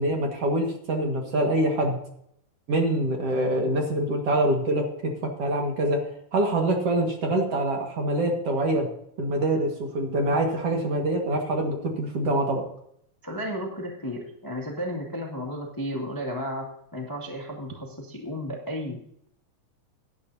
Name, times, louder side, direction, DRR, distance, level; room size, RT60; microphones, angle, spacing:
voice 1, 0.0-2.0 2.7-6.1 6.3-8.9 9.2-12.6, right 1 dB, 50° right, 2 dB, 2.2 m, -25 dB
voice 2, 13.2-19.0, equal, 20° left, 0 dB, 0.6 m, -33 dB
17.0 x 11.0 x 2.7 m, 0.70 s
omnidirectional pair, 4.3 m